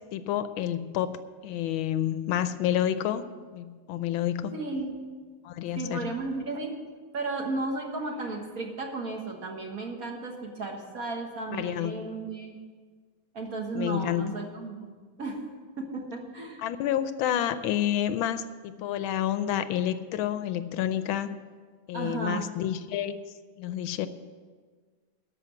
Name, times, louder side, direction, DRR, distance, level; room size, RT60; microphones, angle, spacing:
voice 1, 0.1-3.2 3.5-4.5 5.4-6.1 11.5-12.1 13.7-14.3 16.6-21.4 21.9-23.2 23.6-24.1, left 11 dB, 80° left, 12 dB, 1.4 m, -29 dB
voice 2, 4.5-5.0 5.8-6.7 7.1-12.6 13.3-14.9 15.2-15.5 15.8-16.6 21.9-22.5, right 3 dB, 45° right, 1 dB, 1.8 m, -34 dB
13.5 x 6.0 x 8.7 m, 1.5 s
omnidirectional pair, 2.3 m